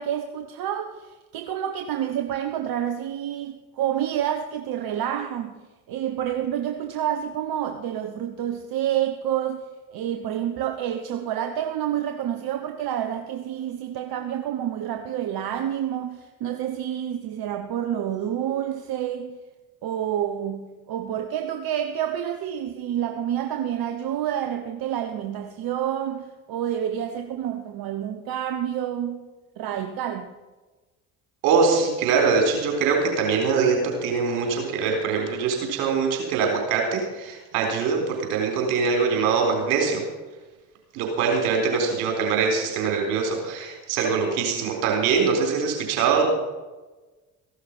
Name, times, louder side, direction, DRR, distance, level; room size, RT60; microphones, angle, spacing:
voice 1, 0.0-5.5 5.9-9.6 9.9-19.4 19.8-29.3 29.6-30.3, right 10 dB, 55° right, 7 dB, 1.2 m, -28 dB
voice 2, 31.4-40.0 40.9-46.3, right 5 dB, 75° right, 1 dB, 4.1 m, -23 dB
15.0 x 11.5 x 5.6 m, 1.2 s
hypercardioid pair, 55°, 43 cm